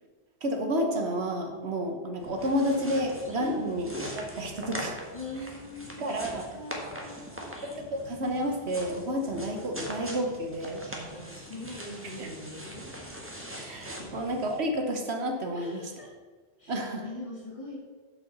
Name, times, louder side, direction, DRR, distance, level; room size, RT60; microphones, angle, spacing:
voice 1, 0.4-3.9 4.2-5.0 6.0-6.5 7.6-10.8 12.2-12.3 13.6-15.8 16.7-17.0, equal, 70° right, 3 dB, 1.4 m, -30 dB
sound 1, 2.2-14.6, equal, 10° right, 1.4 m, -42 dB
voice 2, 3.4-3.8 5.1-6.2 6.5-7.5 10.8-12.9 14.0-14.2 15.5-16.1 16.6-17.8, left 1 dB, 30° left, -2 dB, 2.0 m, -41 dB
7.8 x 5.7 x 6.6 m, 1.4 s
omnidirectional pair, 1.2 m